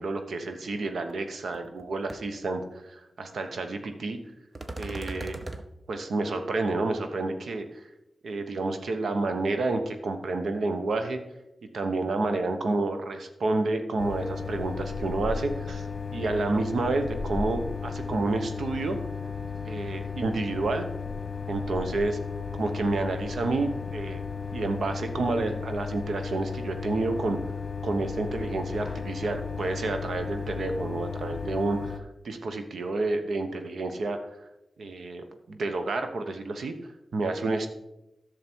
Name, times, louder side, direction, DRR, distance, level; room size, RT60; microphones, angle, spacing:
voice 1, 0.0-4.2 4.8-5.4 5.9-7.9 8.2-11.2 11.7-19.0 19.6-20.9 21.5-22.2 22.5-24.2 24.5-27.4 27.8-34.2 34.8-36.7 37.1-37.7, right 3 dB, 80° right, 7 dB, 1.0 m, -29 dB
sound 1, 1.1-1.2 1.5-1.8 2.1-2.2 4.6-5.6, right 2 dB, 35° right, 0.8 m, -37 dB
sound 2, 14.0-32.0, left 5 dB, 40° left, 1.2 m, -35 dB
11.0 x 6.6 x 4.5 m, 0.92 s
cardioid pair, 70°, 0 cm